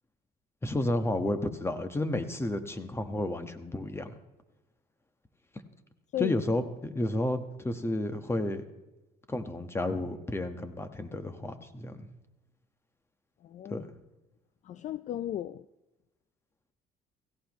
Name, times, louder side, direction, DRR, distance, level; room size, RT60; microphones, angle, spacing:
voice 1, 0.6-4.1 6.2-8.6 9.3-12.1 13.7-13.9, left 1 dB, 15° left, 8 dB, 1.3 m, -31 dB
voice 2, 13.4-13.8 14.6-15.6, left 12 dB, 45° left, 16 dB, 0.4 m, -35 dB
17.0 x 16.5 x 3.1 m, 1.0 s
cardioid pair, 110°, 17 cm